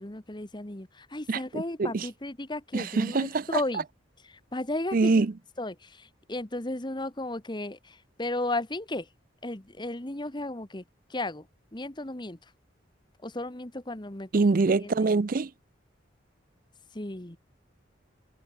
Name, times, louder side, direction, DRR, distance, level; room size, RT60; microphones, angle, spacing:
voice 1, 0.0-3.8 4.2-5.2 5.6-9.1 9.4-10.8 11.1-11.5 11.7-12.5 13.2-14.3 14.6-15.1 16.9-17.4, left 2 dB, 25° left, 1.4 m, -34 dB
voice 2, 1.3-2.1 2.7-3.4 4.9-5.3 14.3-15.5, right 3 dB, 45° right, 0.5 m, -24 dB
head